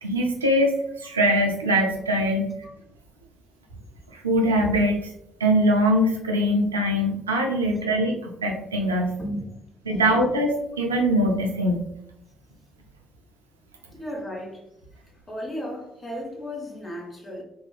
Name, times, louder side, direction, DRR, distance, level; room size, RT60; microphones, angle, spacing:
voice 1, 0.0-2.5 4.1-5.0 5.4-8.1 8.4-9.2 9.9-11.8, equal, 85° right, 0.3 m, -22 dB
voice 2, 14.0-14.6 15.3-17.4, equal, 30° left, 0.9 m, -34 dB
3.1 x 2.4 x 2.2 m
figure-of-eight pair, 45°, 0 cm